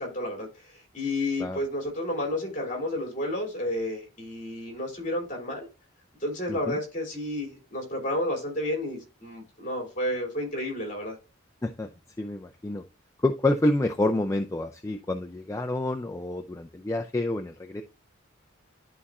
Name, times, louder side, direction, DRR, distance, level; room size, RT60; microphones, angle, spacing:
voice 1, 0.0-5.7 6.2-11.1, left 1 dB, 40° left, 2.8 m, -31 dB
voice 2, 6.5-6.8 11.6-11.9 12.2-12.8 13.2-17.8, left 2 dB, 15° left, 0.3 m, -28 dB
11.0 x 4.1 x 2.3 m
head